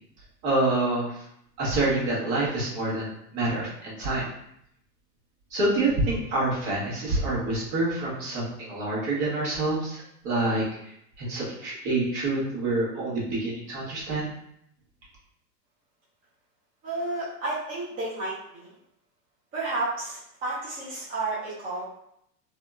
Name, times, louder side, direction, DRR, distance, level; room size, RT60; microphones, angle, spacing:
voice 1, 0.4-1.2 1.6-4.3 5.5-10.6 11.2-14.3, right 2 dB, 45° right, -6 dB, 1.3 m, -27 dB
voice 2, 16.8-18.7 19.5-21.8, right 2 dB, 20° right, -8 dB, 0.4 m, -31 dB
2.8 x 2.0 x 2.3 m, 0.73 s
hypercardioid pair, 110°, 49 cm